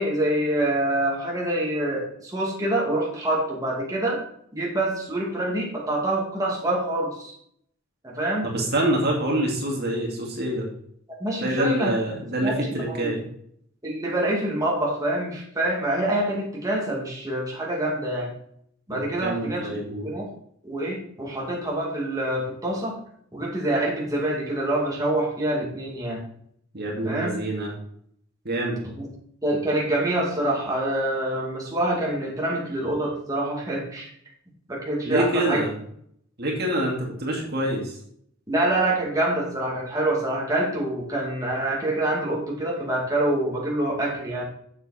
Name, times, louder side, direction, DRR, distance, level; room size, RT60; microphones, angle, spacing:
voice 1, 0.0-4.2 4.5-7.3 8.0-8.5 11.2-11.9 12.4-13.1 13.8-18.3 18.9-19.7 20.0-20.3 20.6-23.0 23.3-26.2 27.0-27.3 29.0-29.1 29.4-34.1 34.7-35.6 38.5-44.4, right 1 dB, 15° right, -4 dB, 2.4 m, -26 dB
voice 2, 8.4-10.7 11.4-13.2 18.9-20.1 26.7-27.7 28.4-28.8 35.0-35.7 36.4-38.0, right 1 dB, 50° right, -1 dB, 2.3 m, -26 dB
8.0 x 7.5 x 4.3 m, 0.67 s
head